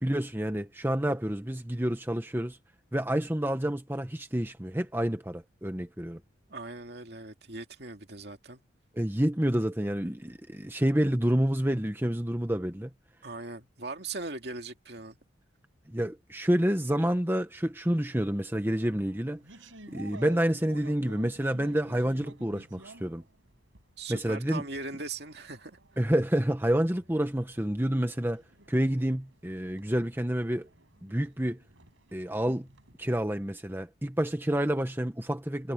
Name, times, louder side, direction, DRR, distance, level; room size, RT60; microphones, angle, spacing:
voice 1, 0.0-2.6 2.9-6.2 8.9-12.9 15.9-19.4 19.9-23.2 24.1-24.6 26.0-28.4 28.7-30.7 31.0-31.6 32.1-32.7 33.0-35.7, right 1 dB, 10° right, 1.1 m, -28 dB
voice 2, 6.5-8.6 13.2-15.2 24.0-25.8, right 3 dB, 55° right, 2.5 m, -39 dB
sound 1, 18.8-24.0 24.4-33.3, right 2 dB, 90° right, 5.8 m, -52 dB
head